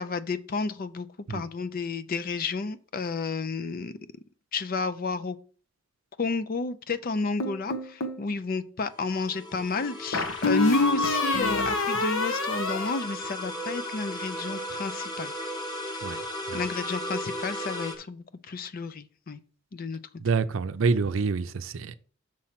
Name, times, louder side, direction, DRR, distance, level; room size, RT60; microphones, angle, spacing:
voice 1, 0.0-3.9 4.5-5.4 6.2-15.3 16.5-19.4 19.7-20.0, left 3 dB, 45° left, 0.5 m, -31 dB
sound 1, 7.4-8.2 10.1-13.7, left 3 dB, 80° left, 0.9 m, -27 dB
sound 2, 8.9-18.0, equal, 20° left, 1.0 m, -36 dB
voice 2, 20.2-22.0, right 4 dB, 80° right, 0.5 m, -27 dB
6.2 x 4.4 x 5.7 m
head